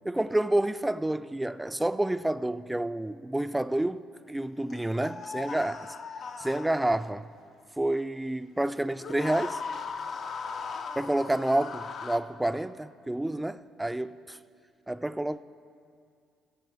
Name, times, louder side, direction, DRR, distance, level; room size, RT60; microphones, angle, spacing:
voice 1, 0.0-5.9 6.4-7.3 7.8-9.6 11.0-14.4 14.9-15.4, right 1 dB, 10° right, 0.3 m, -29 dB
sound 1, 4.7-7.1 8.9-12.2, left 5 dB, 55° left, 0.5 m, -38 dB
14.0 x 7.5 x 4.6 m
hypercardioid pair, 60°, 0 cm